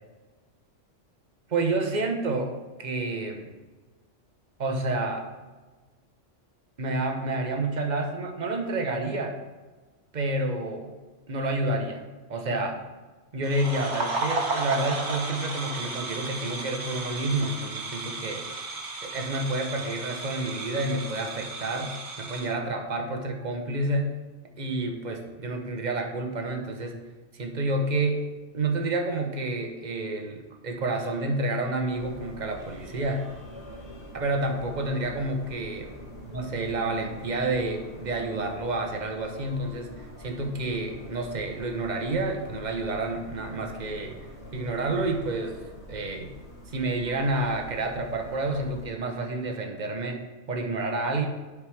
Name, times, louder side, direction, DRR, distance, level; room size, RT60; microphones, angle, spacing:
voice 1, 1.5-2.5 2.8-3.4 4.6-5.2 6.8-9.4 10.1-10.9 11.3-12.0 12.3-12.8 13.3-18.4 19.0-24.1 24.6-27.0 27.3-28.2 28.5-33.2 34.1-35.9 36.3-44.2 44.5-45.6 45.9-46.3 46.7-50.2 50.5-51.3, right 2 dB, 40° right, 3 dB, 1.0 m, -29 dB
sound 1, 13.4-22.5, right 3 dB, 65° right, 1.3 m, -34 dB
sound 2, 31.9-48.9, equal, 30° left, 2.3 m, -44 dB
11.5 x 4.8 x 3.5 m, 1.3 s
omnidirectional pair, 1.3 m